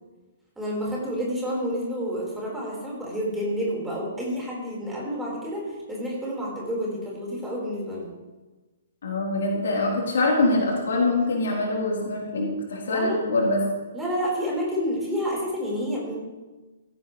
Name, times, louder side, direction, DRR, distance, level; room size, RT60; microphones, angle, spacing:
voice 1, 0.6-8.1 12.9-13.2 13.9-16.2, equal, 5° right, -5 dB, 4.5 m, -29 dB
voice 2, 9.0-13.6, left 2 dB, 55° left, -2 dB, 3.7 m, -24 dB
16.5 x 15.5 x 3.3 m, 1.2 s
figure-of-eight pair, 120°, 0 cm